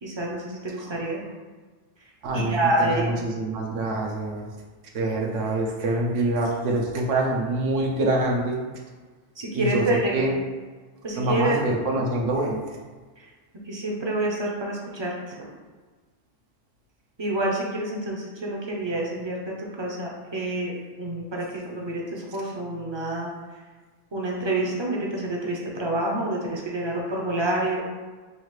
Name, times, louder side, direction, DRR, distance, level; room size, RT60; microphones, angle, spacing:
voice 1, 0.0-1.3 2.3-3.2 9.4-10.3 11.0-11.6 13.7-15.5 17.2-23.3 24.1-27.8, right 1 dB, 35° right, -2 dB, 0.5 m, -28 dB
voice 2, 2.2-4.5 4.9-8.6 9.5-9.8 10.1-10.3 11.2-12.6, right 2 dB, 85° right, 0 dB, 1.0 m, -25 dB
5.4 x 2.4 x 3.1 m, 1.4 s
omnidirectional pair, 1.2 m